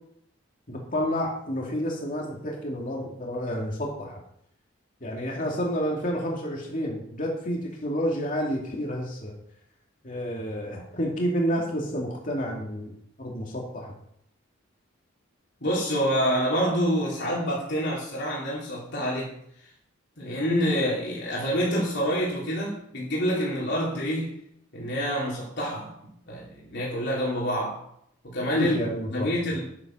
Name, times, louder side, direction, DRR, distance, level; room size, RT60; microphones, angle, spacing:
voice 1, 0.7-4.2 5.0-9.4 10.0-12.9 13.2-13.9 28.5-29.3, equal, 40° left, -1 dB, 2.6 m, -29 dB
voice 2, 15.6-19.4 20.2-24.3 24.7-27.8 28.2-28.7 29.1-29.6, equal, 60° left, -5 dB, 3.7 m, -27 dB
11.0 x 9.3 x 6.2 m, 0.73 s
head